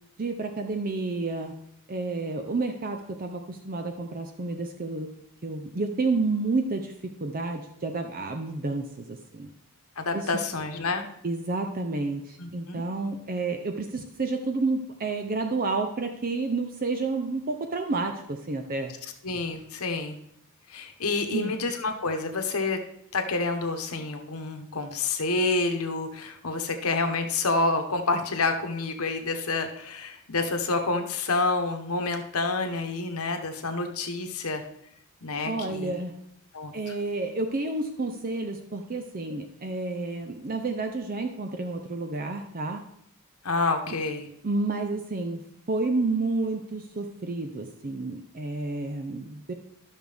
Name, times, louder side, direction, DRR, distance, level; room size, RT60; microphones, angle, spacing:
voice 1, 0.2-1.5 1.9-9.5 10.1-10.3 11.2-18.9 21.3-21.6 35.4-36.2 36.7-42.8 43.9-44.0 44.4-45.4 45.7-49.5, right 3 dB, 40° right, 5 dB, 0.6 m, -30 dB
voice 2, 10.0-11.1 12.4-12.8 19.2-20.2 20.7-22.8 23.1-34.6 35.2-35.9 36.5-36.7 43.4-44.3, left 3 dB, 75° left, 5 dB, 1.1 m, -28 dB
12.5 x 6.2 x 3.5 m, 0.74 s
head